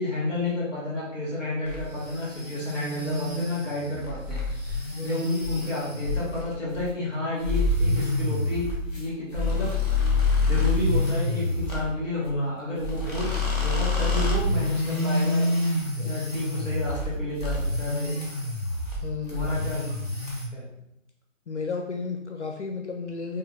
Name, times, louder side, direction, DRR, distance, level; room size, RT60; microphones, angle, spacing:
voice 1, 0.0-9.7 10.4-18.1 19.3-20.0 20.5-20.7, left 2 dB, 5° right, -7 dB, 1.2 m, -30 dB
sound 1, 1.6-6.5 7.4-11.8 12.8-17.1 17.4-19.0 19.3-20.4, left 2 dB, 30° right, 0.5 m, -27 dB
sound 2, 4.6-4.9 5.4-5.7 6.0-6.3 6.7-7.1 7.4-7.6 8.1-8.4 8.8-9.1 9.5-9.8 10.2-10.5 10.9-11.2 11.5-11.8 12.2-12.5, left 5 dB, 10° left, 0.8 m, -35 dB
voice 2, 4.9-5.2 19.0-19.5 21.5-23.4, left 4 dB, 60° left, 3 dB, 0.5 m, -33 dB
3.0 x 2.6 x 3.8 m, 0.80 s
hypercardioid pair, 170°, 41 cm